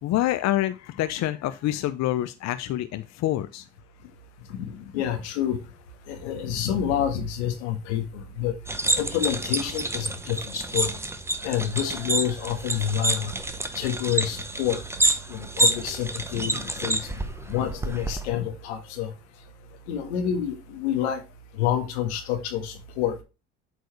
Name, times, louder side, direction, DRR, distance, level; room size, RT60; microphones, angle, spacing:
voice 1, 0.0-3.6, left 14 dB, 55° left, 0.7 m, -27 dB
voice 2, 4.6-5.6 6.1-8.5 9.0-10.9 11.4-13.3 13.7-14.8 15.3-17.1 17.5-19.1 19.9-21.2 21.6-23.2, left 9 dB, 90° left, 1.5 m, -28 dB
sound 1, 8.7-18.3, right 2 dB, 10° right, 0.8 m, -28 dB
sound 2, 16.0-20.6, equal, 55° right, 3.3 m, -54 dB
8.1 x 4.7 x 3.1 m
supercardioid pair, 85°, 33 cm